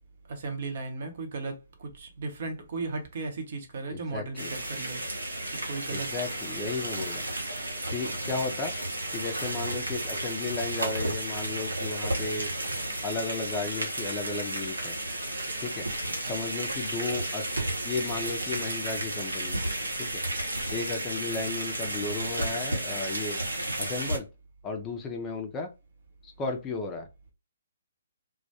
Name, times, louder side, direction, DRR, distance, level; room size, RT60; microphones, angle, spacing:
voice 1, 0.3-5.3 5.6-6.1 8.2-8.5, right 3 dB, 55° right, 0.7 m, -36 dB
voice 2, 3.9-4.5 5.9-7.2 7.9-8.7 9.1-12.5 13.0-15.0 15.6-15.9 16.2-19.6 20.0-20.2 20.7-23.4 23.8-24.3 24.6-25.7 26.2-27.1, left 4 dB, 20° left, 0.4 m, -34 dB
sound 1, 4.4-24.2, right 1 dB, 80° right, 0.9 m, -33 dB
2.2 x 2.1 x 2.8 m
figure-of-eight pair, 130°, 0 cm